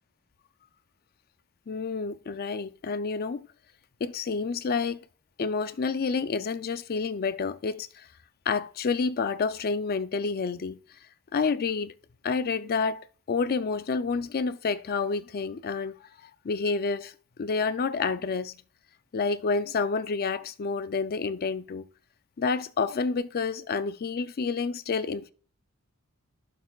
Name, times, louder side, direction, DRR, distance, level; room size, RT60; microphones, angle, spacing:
voice 1, 1.7-3.4 4.0-5.0 5.4-8.1 8.5-10.8 11.3-11.9 12.2-16.1 16.4-17.1 17.4-18.5 19.1-21.8 22.4-25.3, left 4 dB, 45° left, 0.4 m, -29 dB
15.0 x 6.6 x 2.4 m
head